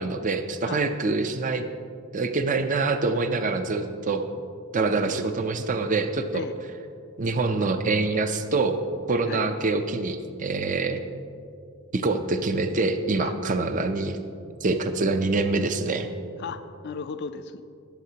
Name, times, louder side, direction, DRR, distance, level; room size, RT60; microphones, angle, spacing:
voice 1, 0.0-1.6 2.1-4.3 4.7-6.5 7.2-8.8 9.1-11.0 11.9-14.2 14.6-16.1, right 3 dB, 35° right, 7 dB, 0.5 m, -25 dB
voice 2, 4.9-5.3 6.3-6.5 9.3-9.4 13.2-13.3 16.4-17.6, left 5 dB, 50° left, 9 dB, 0.4 m, -35 dB
20.0 x 8.3 x 2.9 m, 2.4 s
head